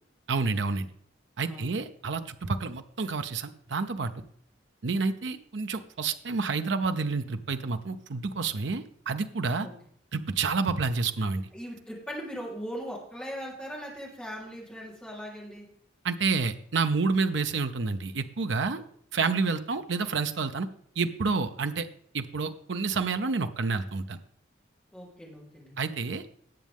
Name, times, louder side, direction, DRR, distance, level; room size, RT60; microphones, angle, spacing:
voice 1, 0.3-0.9 1.4-4.1 4.8-9.7 10.1-11.5 16.0-18.8 19.1-20.7 21.0-21.9 22.1-24.2 25.8-26.3, right 4 dB, 70° right, 9 dB, 0.7 m, -29 dB
voice 2, 1.4-1.7 9.6-9.7 11.5-15.7 24.9-25.7, equal, 5° left, -4 dB, 3.6 m, -39 dB
18.0 x 7.3 x 3.6 m, 0.64 s
head